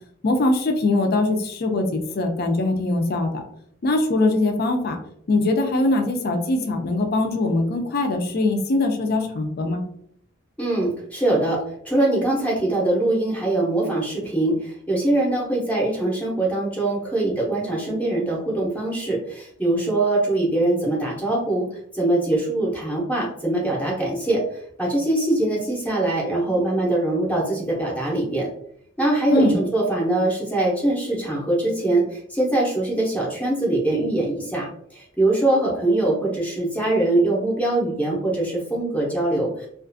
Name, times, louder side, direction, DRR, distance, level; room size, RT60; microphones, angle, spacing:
voice 1, 0.2-3.3 3.8-5.0 5.3-9.8 29.3-29.5, left 2 dB, 50° left, 4 dB, 0.4 m, -22 dB
voice 2, 10.6-21.7 21.9-24.4 24.8-28.5 29.0-39.7, right 2 dB, 5° left, -4 dB, 0.6 m, -22 dB
2.4 x 2.4 x 2.5 m, 0.68 s
head